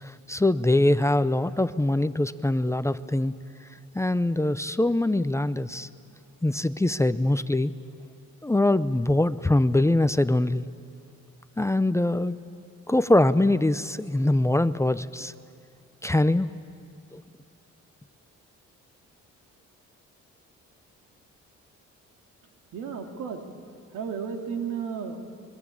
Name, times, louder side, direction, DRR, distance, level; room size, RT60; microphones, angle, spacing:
voice 1, 0.0-3.3 3.9-5.9 6.4-7.7 8.4-10.7 11.6-12.4 12.9-15.3 16.0-16.5 17.1-17.2, left 1 dB, 10° left, 13 dB, 0.7 m, -23 dB
voice 2, 22.7-23.4 23.9-25.3, right 6 dB, 90° right, 3 dB, 2.8 m, -33 dB
25.5 x 23.0 x 8.6 m, 2.4 s
cardioid pair, 90°, 30 cm